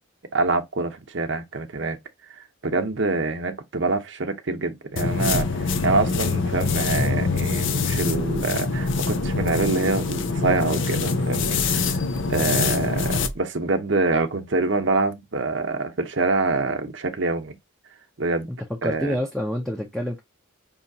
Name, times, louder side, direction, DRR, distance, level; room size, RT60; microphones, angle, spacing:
voice 1, 0.3-2.0 2.6-12.0 12.3-17.6 18.2-18.5 18.8-19.2, right 3 dB, 60° right, 0.8 m, -25 dB
sound 1, 5.0-13.3, left 4 dB, 65° left, 0.6 m, -24 dB
voice 2, 18.8-20.2, equal, ahead, 0.6 m, -27 dB
5.5 x 2.8 x 2.7 m
head